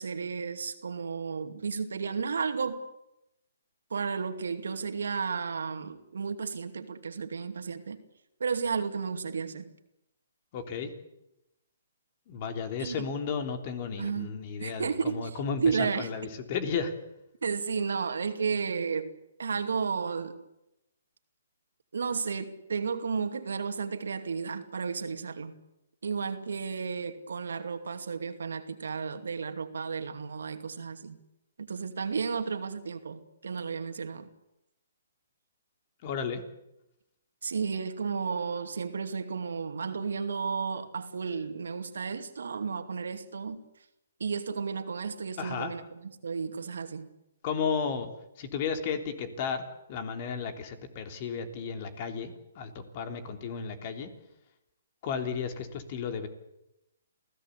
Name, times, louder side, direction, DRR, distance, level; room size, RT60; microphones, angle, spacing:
voice 1, 0.0-2.8 3.9-8.0 8.4-9.7 12.8-13.0 14.0-14.3 14.6-15.3 15.6-16.1 17.4-19.1 19.4-20.3 21.9-25.6 26.0-31.2 31.6-34.3 37.4-43.7 44.2-47.1, right 5 dB, 75° right, 8 dB, 2.5 m, -33 dB
voice 2, 10.5-10.9 12.3-16.9 36.0-36.4 45.4-45.7 47.4-48.1 48.4-49.6 49.9-54.1 55.0-56.3, left 6 dB, 40° left, 7 dB, 3.4 m, -33 dB
28.0 x 16.5 x 8.4 m, 0.89 s
hypercardioid pair, 140°, 0 cm